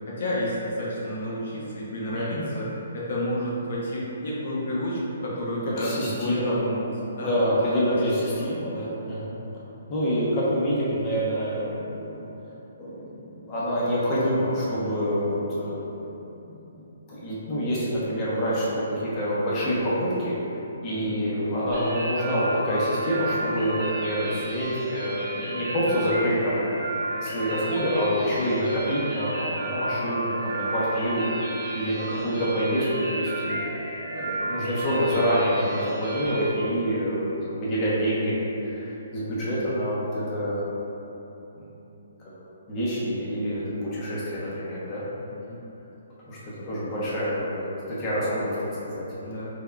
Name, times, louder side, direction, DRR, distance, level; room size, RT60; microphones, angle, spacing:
voice 1, 0.1-2.7 2.9-7.3 7.6-7.7 8.2-8.4 20.9-21.1 31.3-31.4 39.7-39.8 45.3-45.6 49.2-49.5, equal, 65° left, -6 dB, 0.8 m, -30 dB
voice 2, 2.1-2.4 5.8-6.6 7.2-9.3 9.9-12.3 12.8-15.8 16.4-16.5 17.1-20.3 20.8-26.6 27.1-33.6 34.1-38.4 38.6-40.6 41.6-41.8 42.7-45.0 46.3-46.4 46.6-49.0, equal, 25° left, -8 dB, 0.8 m, -27 dB
sound 1, 21.7-36.5, right 1 dB, 40° right, 1.3 m, -33 dB
3.6 x 3.5 x 2.2 m, 3.0 s
hypercardioid pair, 150°, 0 cm